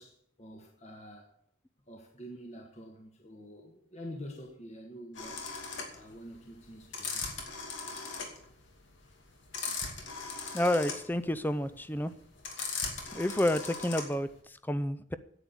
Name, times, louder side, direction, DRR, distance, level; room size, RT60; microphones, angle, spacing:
voice 1, 0.0-1.3 1.9-5.4 5.9-7.3, equal, 35° left, 1.5 m, -47 dB
sound 1, 5.2-14.4, left 4 dB, 80° left, 2.6 m, -38 dB
voice 2, 10.5-12.1 13.1-15.1, left 1 dB, 10° left, 0.5 m, -30 dB
9.9 x 8.6 x 8.2 m
head